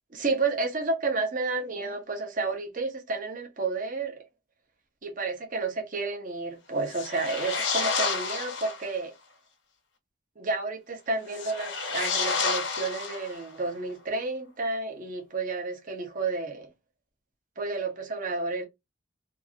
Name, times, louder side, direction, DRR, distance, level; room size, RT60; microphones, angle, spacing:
voice 1, 0.1-4.2 5.0-9.1 10.4-16.7 17.6-18.6, right 3 dB, 45° right, 0.8 m, -31 dB
sound 1, 6.8-8.9 11.3-13.6, left 4 dB, 70° left, 0.7 m, -30 dB
2.7 x 2.5 x 2.6 m
head